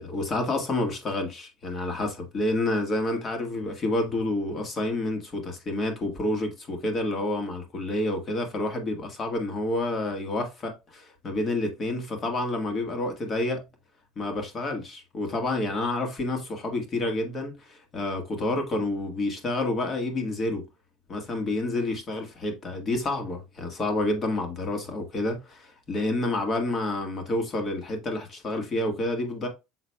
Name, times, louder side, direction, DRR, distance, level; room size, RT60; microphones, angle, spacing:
voice 1, 0.0-13.6 14.1-20.6 21.1-29.5, left 2 dB, 35° left, 1.6 m, -29 dB
6.0 x 3.9 x 2.2 m
hypercardioid pair, 90°, 0 cm